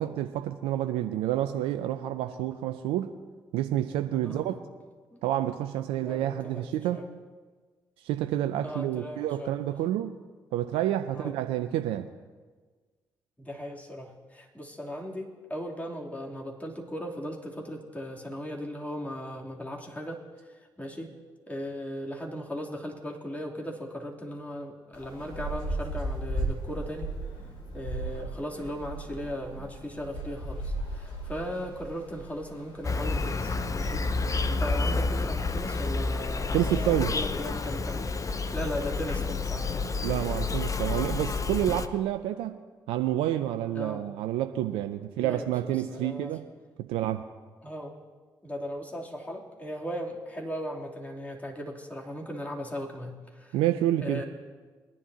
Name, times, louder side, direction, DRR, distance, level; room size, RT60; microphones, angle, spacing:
voice 1, 0.0-3.2 3.5-4.6 5.2-7.0 8.0-10.1 10.5-12.1 36.5-37.1 40.0-42.6 42.9-46.5 46.9-47.2 53.5-54.2, right 12 dB, 75° right, 8 dB, 0.5 m, -29 dB
voice 2, 4.2-4.6 5.1-5.2 6.0-6.6 6.9-7.0 8.6-9.5 11.1-11.4 13.4-20.2 20.4-21.1 21.5-27.1 27.7-34.0 34.5-36.7 37.1-39.8 43.7-44.0 45.2-46.3 47.6-47.9 48.4-53.6 54.0-54.2, equal, 15° left, -2 dB, 3.1 m, -37 dB
sound 1, 24.9-40.5, right 1 dB, 65° left, 2.3 m, -39 dB
Insect, 32.8-41.9, left 3 dB, 35° left, 0.8 m, -29 dB
21.5 x 11.0 x 2.9 m, 1.4 s
hypercardioid pair, 45°, 10 cm